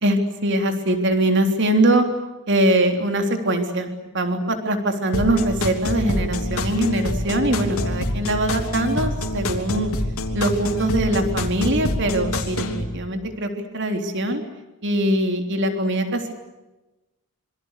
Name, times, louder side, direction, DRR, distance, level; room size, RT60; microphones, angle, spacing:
voice 1, 0.0-2.1 2.5-3.9 4.1-9.9 10.3-14.4 14.8-16.3, right 1 dB, 55° right, 5 dB, 3.6 m, -22 dB
sound 1, 5.1-12.8, left 1 dB, 80° left, 3.2 m, -26 dB
26.5 x 24.0 x 8.3 m, 1.1 s
head